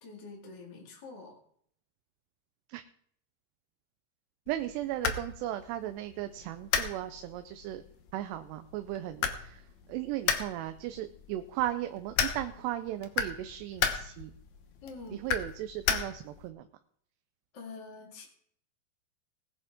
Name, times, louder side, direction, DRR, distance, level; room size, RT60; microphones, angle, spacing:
voice 1, 0.0-1.4 14.8-15.3 17.5-18.3, left 4 dB, 35° left, -2 dB, 2.2 m, -46 dB
sound 1, 4.5-16.5, left 7 dB, 70° left, 1.7 m, -36 dB
voice 2, 4.5-7.8 8.1-9.6 9.9-14.3 15.1-16.7, right 13 dB, 85° right, 8 dB, 2.7 m, -36 dB
19.5 x 9.3 x 3.6 m, 0.64 s
omnidirectional pair, 4.8 m